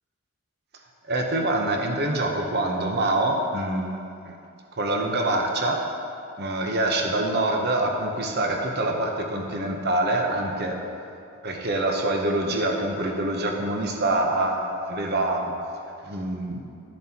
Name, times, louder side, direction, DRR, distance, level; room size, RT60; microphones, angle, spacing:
voice 1, 1.1-4.0 4.2-4.3 4.8-5.8 6.4-10.8 11.4-15.5 16.0-16.7, right 2 dB, 45° right, 2 dB, 0.9 m, -25 dB
12.0 x 7.3 x 2.9 m, 2.5 s
head